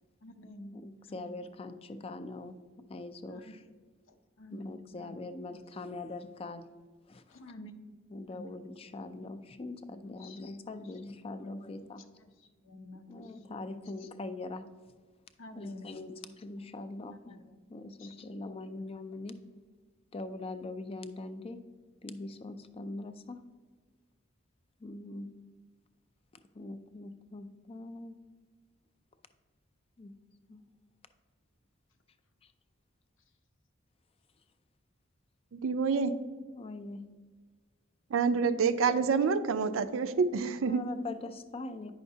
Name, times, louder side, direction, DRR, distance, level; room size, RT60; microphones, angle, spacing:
voice 1, 0.2-0.7 1.1-1.3 3.3-3.6 4.4-5.1 7.3-7.7 8.3-8.5 10.0-10.4 12.2-12.3 12.6-13.6 15.4-15.9 17.1-17.4 18.0-18.3, left 1 dB, 70° left, 8 dB, 0.6 m, -48 dB
voice 2, 0.7-2.5 2.9-3.6 4.5-6.6 7.1-7.4 8.1-12.0 13.1-14.7 15.5-19.4 20.1-21.6 22.0-23.4 24.8-25.3 26.5-28.2 30.0-30.1 30.5-30.6 36.5-37.0 40.7-41.9, left 2 dB, 30° left, 11 dB, 0.4 m, -42 dB
voice 3, 35.5-36.1 38.1-40.9, right 5 dB, 75° right, 12 dB, 0.4 m, -27 dB
9.0 x 5.7 x 2.7 m, 1.4 s
head